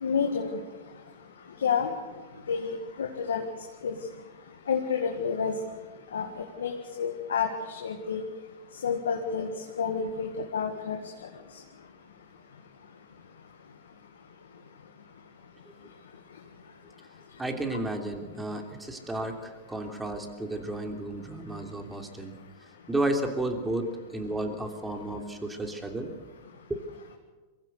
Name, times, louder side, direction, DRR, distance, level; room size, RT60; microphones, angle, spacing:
voice 1, 0.0-0.6 1.6-1.9 2.5-3.4 3.8-3.9 4.7-5.5 6.1-6.3 6.6-8.2 8.8-9.5 9.8-11.0, left 6 dB, 85° left, 3 dB, 1.9 m, -29 dB
voice 2, 17.4-22.4 22.9-26.1, right 1 dB, 10° right, 4 dB, 3.3 m, -32 dB
23.0 x 15.5 x 8.2 m, 1.3 s
hypercardioid pair, 110°, 0 cm